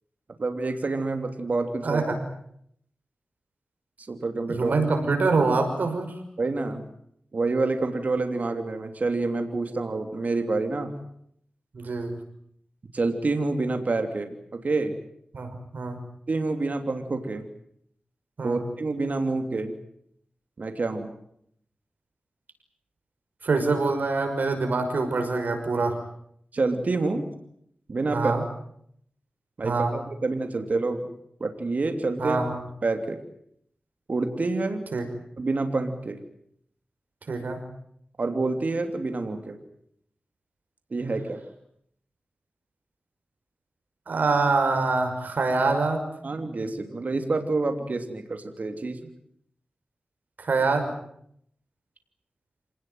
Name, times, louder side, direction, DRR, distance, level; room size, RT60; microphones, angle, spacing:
voice 1, 0.4-2.0 4.1-4.7 6.4-6.8 7.3-11.0 12.9-15.0 16.3-17.5 18.4-19.7 20.6-21.1 26.5-27.3 27.9-28.4 29.6-31.0 31.4-32.4 32.8-33.2 34.1-34.8 35.4-36.2 38.2-39.6 40.9-41.4 46.2-49.0, right 3 dB, 60° right, 6 dB, 3.0 m, -27 dB
voice 2, 1.8-2.2 4.5-6.1 11.7-12.2 15.3-16.0 18.4-18.6 23.4-26.0 28.1-28.4 29.6-29.9 32.2-32.6 34.9-35.0 37.3-37.6 44.1-46.0 50.4-50.9, right 3 dB, 75° right, 6 dB, 6.0 m, -25 dB
27.0 x 19.0 x 9.3 m, 0.71 s
cardioid pair, 60°, 3 cm